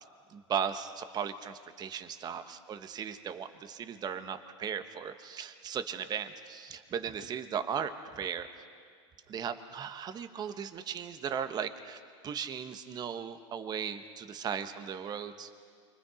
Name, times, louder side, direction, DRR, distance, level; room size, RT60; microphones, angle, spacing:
voice 1, 0.3-8.5 9.3-15.5, right 7 dB, 25° right, 9 dB, 1.2 m, -37 dB
29.0 x 24.0 x 5.0 m, 2.1 s
supercardioid pair, 130°, 16 cm